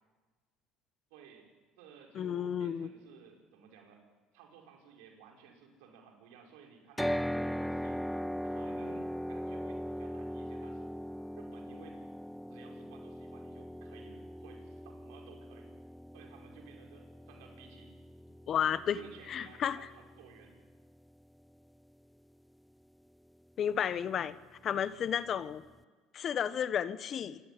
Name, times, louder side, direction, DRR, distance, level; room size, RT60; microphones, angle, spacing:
voice 1, 1.1-4.1 4.3-8.0 8.4-10.9 11.3-12.1 12.5-15.8 16.1-17.9 18.9-20.6, right 6 dB, 75° right, 2 dB, 5.4 m, -56 dB
voice 2, 2.1-2.9 18.5-19.0 19.3-19.8 23.6-24.4 24.6-25.6 26.1-27.4, left 9 dB, 50° left, 15 dB, 1.2 m, -32 dB
sound 1, 7.0-21.1, equal, ahead, 0.7 m, -40 dB
27.0 x 16.5 x 9.9 m, 1.3 s
hypercardioid pair, 75°, 0 cm